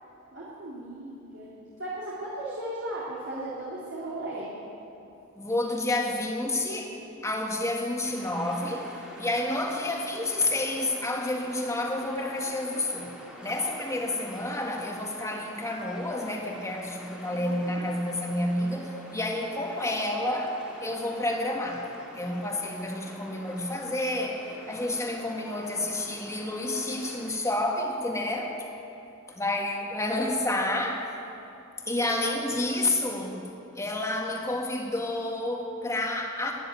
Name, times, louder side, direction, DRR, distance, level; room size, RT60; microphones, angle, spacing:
voice 1, 0.3-1.5 1.8-4.5 17.3-17.8, right 1 dB, 60° right, -6 dB, 2.6 m, -36 dB
voice 2, 5.4-7.0 7.2-13.1 13.4-21.9 22.1-28.5 29.4-31.1 31.9-33.4 33.8-36.5, left 1 dB, 15° left, 1 dB, 1.7 m, -29 dB
sound 1, 8.0-27.3, equal, 5° right, 2.1 m, -47 dB
13.5 x 10.0 x 9.3 m, 2.9 s
head